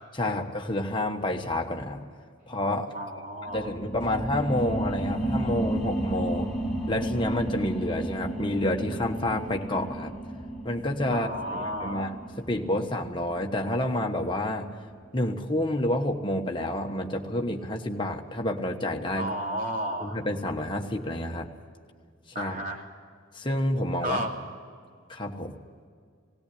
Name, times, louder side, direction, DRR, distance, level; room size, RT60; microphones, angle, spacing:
voice 1, 0.2-2.1 2.5-2.9 3.5-6.5 6.9-10.1 10.6-12.1 12.4-14.7 15.1-19.3 20.0-21.5 22.4-22.6 23.3-24.2 25.1-25.6, left 1 dB, 25° left, 2 dB, 1.3 m, -29 dB
voice 2, 2.9-3.7 11.1-12.1 19.2-20.2 22.3-22.8 24.0-24.3, equal, 40° right, 0 dB, 2.9 m, -32 dB
sound 1, 3.5-14.6 15.1-15.2, right 1 dB, ahead, 2.4 m, -33 dB
18.5 x 16.5 x 8.6 m, 2.1 s
head